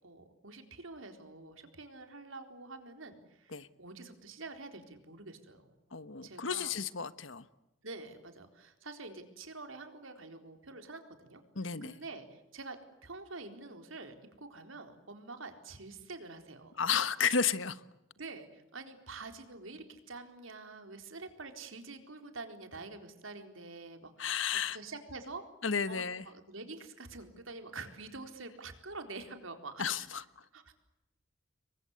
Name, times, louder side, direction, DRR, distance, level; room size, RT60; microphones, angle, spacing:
voice 1, 0.0-5.7 6.2-6.8 7.8-11.4 11.8-16.7 18.2-24.4 24.7-25.5 25.9-30.1 30.5-30.7, right 3 dB, 90° right, 4.0 m, -47 dB
voice 2, 5.9-7.5 11.5-12.0 16.8-17.8 24.2-24.8 25.6-26.2 29.8-30.4, left 6 dB, 75° left, 1.3 m, -32 dB
28.5 x 23.0 x 8.2 m
head